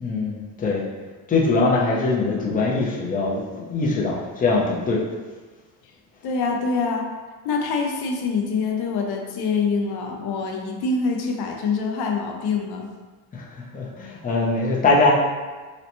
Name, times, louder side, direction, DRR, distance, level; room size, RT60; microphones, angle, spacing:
voice 1, 0.0-0.9 1.3-5.0 13.3-13.4 13.7-15.1, left 3 dB, 20° left, -3 dB, 0.5 m, -22 dB
voice 2, 6.2-7.1 7.4-12.9, left 4 dB, 60° left, 2 dB, 0.6 m, -25 dB
3.9 x 2.1 x 2.9 m, 1.3 s
cardioid pair, 130°, 44 cm